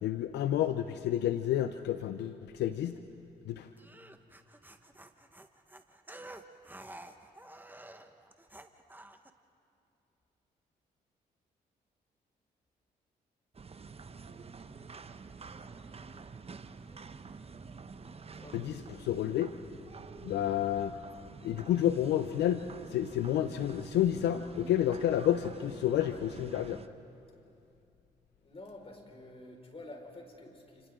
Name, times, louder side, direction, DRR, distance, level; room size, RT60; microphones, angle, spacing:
voice 1, 0.0-3.0 3.5-3.7 18.5-19.5 20.2-20.9 21.4-22.6 22.9-26.8, left 11 dB, 80° left, 10 dB, 0.7 m, -30 dB
sound 1, 3.8-9.3, right 1 dB, 10° right, 1.4 m, -50 dB
sound 2, 13.5-26.9, right 5 dB, 35° right, 1.0 m, -48 dB
voice 2, 18.3-19.0 28.4-30.9, left 2 dB, 35° left, 1 dB, 5.1 m, -49 dB
29.5 x 28.0 x 3.8 m, 2.6 s
supercardioid pair, 50°, 17 cm